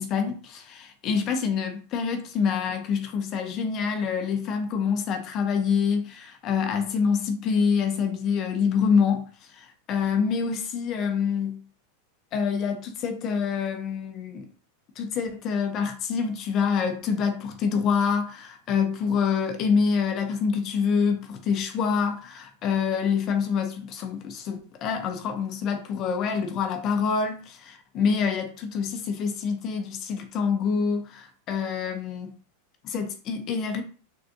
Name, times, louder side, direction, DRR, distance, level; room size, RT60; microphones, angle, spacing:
voice 1, 0.0-11.6 12.3-14.5 15.0-32.3 32.8-33.8, left 6 dB, 40° left, 0.6 m, -26 dB
3.5 x 2.3 x 2.6 m
hypercardioid pair, 105°, 0 cm